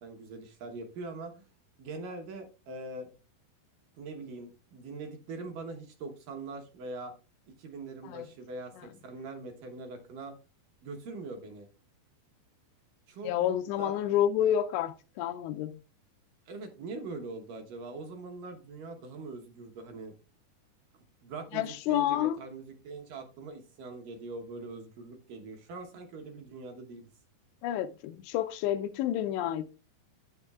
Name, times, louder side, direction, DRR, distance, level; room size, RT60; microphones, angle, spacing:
voice 1, 0.0-1.5 1.8-3.1 4.0-7.1 7.6-10.3 10.8-11.7 13.1-14.1 16.5-20.1 21.2-27.1, right 3 dB, 70° right, 2.1 m, -42 dB
voice 2, 13.2-15.8 21.5-22.4 27.6-29.7, left 11 dB, 85° left, 2.6 m, -29 dB
9.5 x 8.2 x 2.4 m
omnidirectional pair, 5.0 m